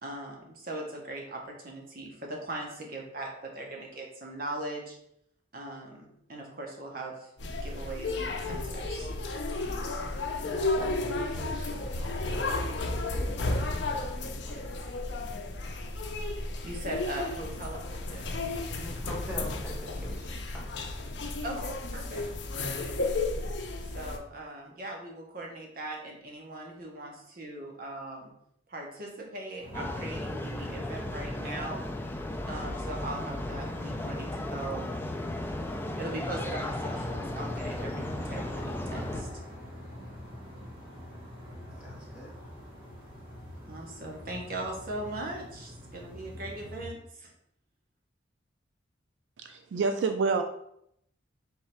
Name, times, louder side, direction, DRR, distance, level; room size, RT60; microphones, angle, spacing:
voice 1, 0.0-5.0 5.5-9.1 16.6-18.2 21.4-22.2 22.6-22.9 23.9-28.3 28.7-31.8 32.5-34.9 36.0-39.3 43.6-47.3, right 1 dB, 50° right, 0 dB, 0.9 m, -40 dB
sound 1, 7.4-24.2, left 2 dB, 65° left, 0.6 m, -33 dB
voice 2, 10.4-12.6 13.2-14.7 18.7-20.7 41.8-42.3, equal, 5° right, -5 dB, 1.3 m, -44 dB
sound 2, 29.6-46.8, equal, 30° right, 1.8 m, -45 dB
sound 3, 29.7-39.2, left 1 dB, 10° left, 0.3 m, -35 dB
voice 3, 49.4-50.4, right 4 dB, 70° right, 6 dB, 0.3 m, -27 dB
3.6 x 3.1 x 4.4 m, 0.75 s
head